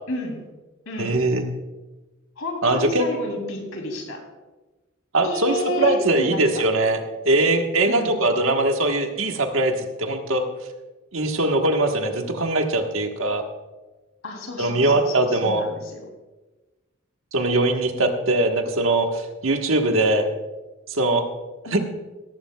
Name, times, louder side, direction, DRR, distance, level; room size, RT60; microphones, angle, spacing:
voice 1, 0.1-0.4 0.8-1.2 2.4-4.2 5.2-6.6 7.8-8.2 14.2-16.1 21.6-21.8, left 1 dB, 80° left, 2 dB, 3.2 m, -30 dB
voice 2, 1.0-1.4 2.6-3.1 5.1-7.0 7.2-10.5 11.1-13.4 14.6-15.6 17.3-20.3 20.9-21.2 21.7-21.8, right 2 dB, 75° right, 4 dB, 1.4 m, -21 dB
17.0 x 15.0 x 2.3 m, 1.2 s
head